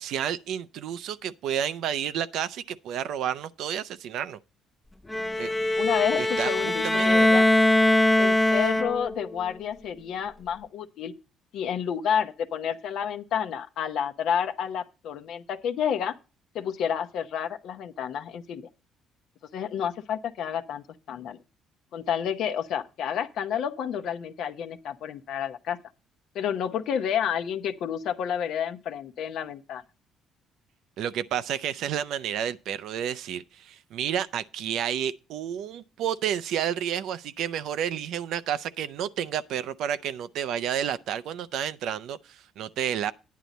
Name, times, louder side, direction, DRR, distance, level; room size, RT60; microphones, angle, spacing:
voice 1, 0.0-4.4 5.4-5.5 6.2-7.3 31.0-43.1, right 9 dB, 75° right, 0.5 m, -31 dB
Bowed string instrument, 5.1-9.3, left 1 dB, 10° left, 0.6 m, -22 dB
voice 2, 5.8-7.5 8.2-11.1 11.5-16.1 16.5-18.7 19.5-21.4 21.9-25.8 26.3-29.8, left 8 dB, 75° left, 0.8 m, -30 dB
9.5 x 9.1 x 4.1 m
cardioid pair, 95°, 0 cm